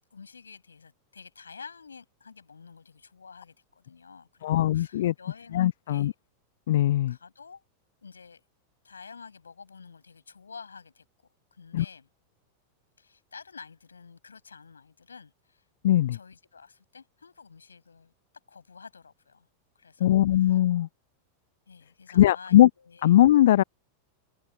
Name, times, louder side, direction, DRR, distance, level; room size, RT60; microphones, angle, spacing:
voice 1, 0.1-6.1 7.1-7.6 8.0-8.4 8.8-11.1 11.5-12.1 13.0-15.6 16.1-18.1 18.5-19.5 19.8-20.6 21.7-23.1, left 5 dB, 75° left, 6.9 m, -49 dB
voice 2, 4.4-5.1 5.5-6.1 6.7-7.2 11.7-11.9 15.8-16.2 20.0-20.9 22.1-22.7 23.0-23.6, left 13 dB, 60° left, 0.3 m, -20 dB
figure-of-eight pair, 90°, 0 cm